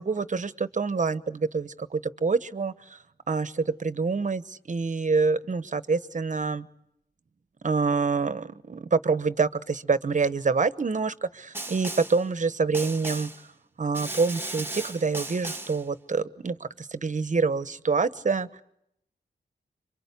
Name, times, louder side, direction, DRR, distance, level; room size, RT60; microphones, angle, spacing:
voice 1, 0.0-3.0 3.3-6.7 7.6-13.3 13.8-18.6, right 4 dB, 45° right, 14 dB, 1.1 m, -26 dB
Snare drum, 11.5-12.2 12.7-13.4 13.9-15.8, right 2 dB, 10° right, 1.4 m, -36 dB
27.5 x 25.0 x 8.3 m, 0.77 s
wide cardioid pair, 100°, 18 cm